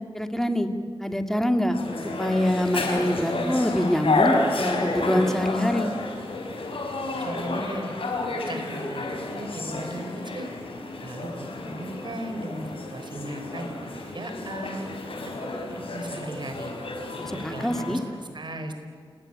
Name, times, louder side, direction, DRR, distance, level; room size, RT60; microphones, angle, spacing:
voice 1, 0.1-0.7 1.0-1.8 2.2-5.9 17.2-18.0, left 1 dB, 5° left, 7 dB, 2.2 m, -25 dB
sound 1, 1.7-18.0, left 2 dB, 75° left, 5.2 m, -30 dB
voice 2, 7.2-7.9 8.5-10.5 11.0-14.9 15.4-16.7 17.3-18.7, right 1 dB, 55° right, 6 dB, 4.0 m, -37 dB
28.0 x 20.0 x 9.9 m, 2.2 s
wide cardioid pair, 80°, 9 cm